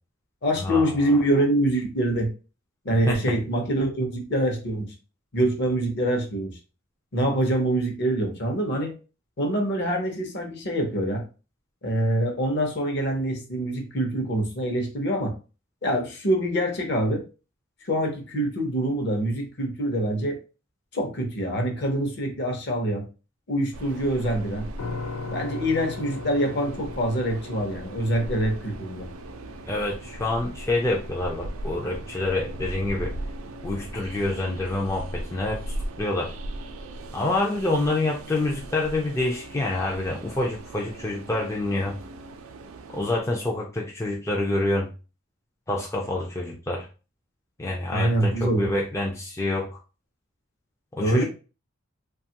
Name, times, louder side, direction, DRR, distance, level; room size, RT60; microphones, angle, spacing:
voice 1, 0.4-2.3 2.8-4.9 5.3-6.6 7.1-8.9 9.4-11.2 11.8-15.3 15.8-17.2 17.8-20.4 20.9-23.1 23.5-24.7 25.3-29.1 47.9-48.7 51.0-51.2, right 1 dB, 50° left, 3 dB, 0.7 m, -25 dB
Train, 23.7-43.2, right 1 dB, 75° right, 0.4 m, -38 dB
sound 1, 24.8-37.6, left 3 dB, 90° left, 0.4 m, -42 dB
voice 2, 29.7-33.1 33.6-36.3 37.1-42.0 42.9-44.9 45.7-46.9 47.6-49.7 50.9-51.2, left 2 dB, 15° left, -1 dB, 0.3 m, -27 dB
2.8 x 2.3 x 2.8 m, 0.33 s
head